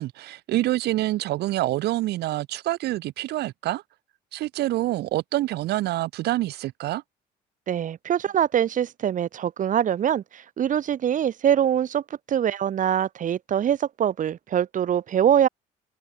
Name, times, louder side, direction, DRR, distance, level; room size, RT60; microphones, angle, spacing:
voice 1, 0.0-3.8 4.3-7.0, right 16 dB, 75° right, 1.9 m, -26 dB
voice 2, 7.7-12.0 12.3-15.5, right 9 dB, 50° right, 2.2 m, -23 dB
cardioid pair, 110°, 17 cm